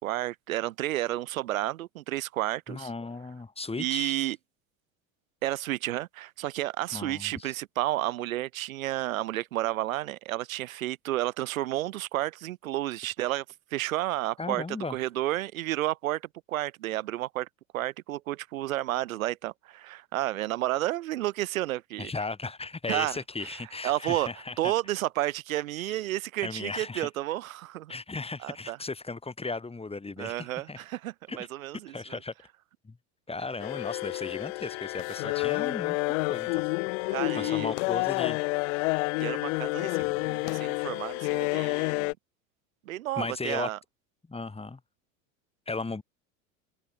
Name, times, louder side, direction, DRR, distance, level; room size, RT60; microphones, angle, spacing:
voice 1, 0.0-2.9 3.8-4.4 5.4-13.4 13.7-16.2 16.5-17.5 17.7-22.1 22.9-23.6 23.8-24.3 24.6-27.9 28.4-28.8 30.2-32.2 37.1-37.7 39.2-42.1 42.9-43.8, right 15 dB, 85° right, 1.2 m, -31 dB
voice 2, 2.7-4.3 6.9-7.5 14.4-15.0 22.0-24.7 25.8-26.0 26.4-27.1 27.9-30.8 31.3-31.4 31.9-32.3 32.8-33.0 33.3-36.0 36.3-36.7 37.0-38.4 43.2-43.7 44.3-44.8 45.7-46.0, left 3 dB, 15° left, 6.3 m, -36 dB
sound 1, 33.6-42.1, left 32 dB, 65° left, 1.0 m, -29 dB
open air
hypercardioid pair, 90°, 40 cm